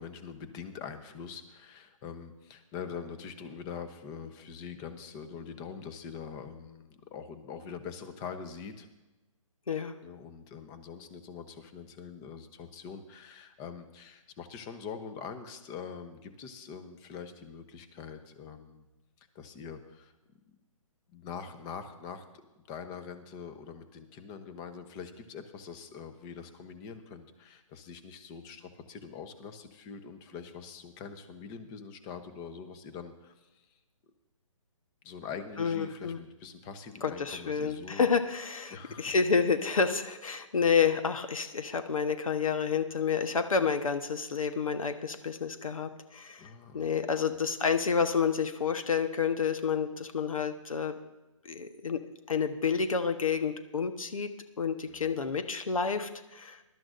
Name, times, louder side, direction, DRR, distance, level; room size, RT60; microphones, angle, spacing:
voice 1, 0.0-8.9 10.0-18.9 19.3-20.1 21.1-22.2 22.7-33.6 35.0-38.1 38.7-39.1 46.4-47.0 54.9-55.4, left 6 dB, 20° left, 9 dB, 1.0 m, -44 dB
voice 2, 35.6-36.2 37.0-51.0 51.4-52.0 52.3-54.3 54.6-56.6, left 6 dB, 75° left, 8 dB, 1.2 m, -29 dB
20.5 x 12.5 x 2.6 m, 1.1 s
hypercardioid pair, 150°, 18 cm